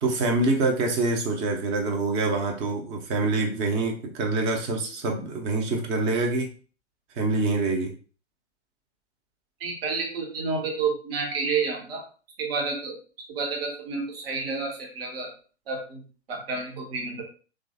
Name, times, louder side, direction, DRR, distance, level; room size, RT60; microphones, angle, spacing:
voice 1, 0.0-6.5 7.2-7.9, right 3 dB, 20° right, 2 dB, 0.4 m, -25 dB
voice 2, 9.6-12.1 12.4-13.0 13.3-15.3 15.7-17.2, right 4 dB, 55° right, 2 dB, 0.9 m, -30 dB
3.1 x 2.4 x 2.5 m, 0.37 s
figure-of-eight pair, 110°, 35 cm